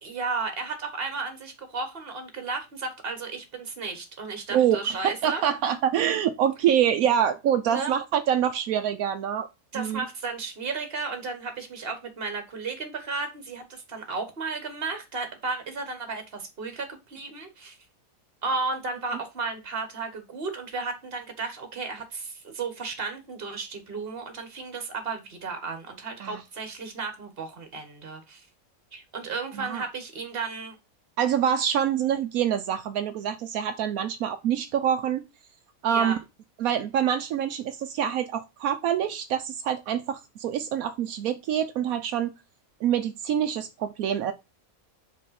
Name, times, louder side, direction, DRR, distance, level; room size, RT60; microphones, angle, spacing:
voice 1, 0.0-5.4 5.7-5.8 7.7-8.0 9.7-17.8 18.4-28.5 28.9-30.7 35.9-36.2, right 4 dB, 45° right, 1.6 m, -34 dB
voice 2, 5.0-9.5 9.7-10.0 26.2-26.4 29.6-29.8 31.2-35.2 35.8-36.2 36.6-42.3 42.8-44.3, right 9 dB, 80° right, 1.1 m, -25 dB
5.3 x 4.1 x 5.7 m
omnidirectional pair, 1.5 m